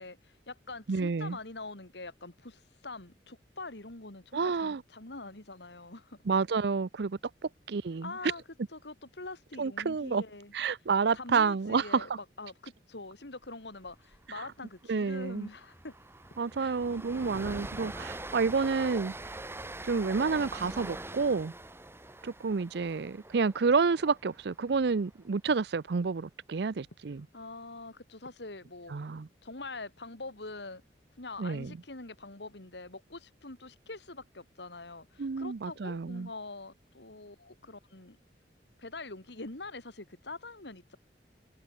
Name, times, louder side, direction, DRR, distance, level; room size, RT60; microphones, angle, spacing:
voice 1, 0.0-6.2 8.0-8.4 8.7-10.5 11.1-15.9 16.6-16.8 27.3-28.9 29.4-30.8 31.2-38.2 38.8-41.0, left 3 dB, 75° left, 2.7 m, -44 dB
voice 2, 0.9-1.4 4.3-4.8 6.3-7.2 7.7-8.1 9.6-10.2 10.5-12.2 14.3-14.5 14.9-15.5 16.4-19.4 19.8-21.5 22.2-27.3 28.9-29.3 31.4-31.7 35.2-36.3, right 5 dB, 65° right, 0.5 m, -29 dB
Train, 13.9-14.2 14.4-14.6 15.0-25.1, right 2 dB, 15° right, 2.0 m, -44 dB
head